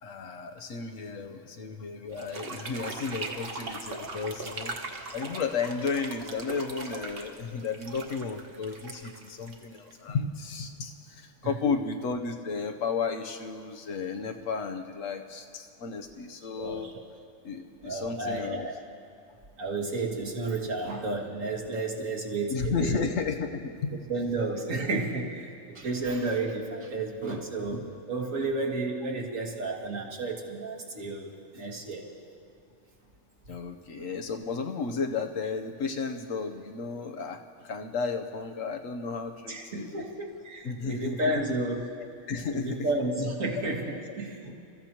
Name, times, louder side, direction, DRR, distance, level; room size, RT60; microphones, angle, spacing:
voice 1, 0.0-4.7 5.1-16.9 17.4-18.7 22.5-24.0 33.5-40.0 40.6-41.3 42.0-42.8, left 5 dB, 85° left, 6 dB, 1.3 m, -33 dB
Running Water, 2.1-10.1, right 3 dB, 50° right, 1.2 m, -40 dB
voice 2, 11.4-11.7 16.6-16.9 17.8-18.7 19.6-23.1 24.1-32.1 39.5-41.8 42.5-44.5, right 2 dB, 85° right, -1 dB, 2.0 m, -32 dB
28.5 x 14.5 x 3.0 m, 2.7 s
omnidirectional pair, 1.3 m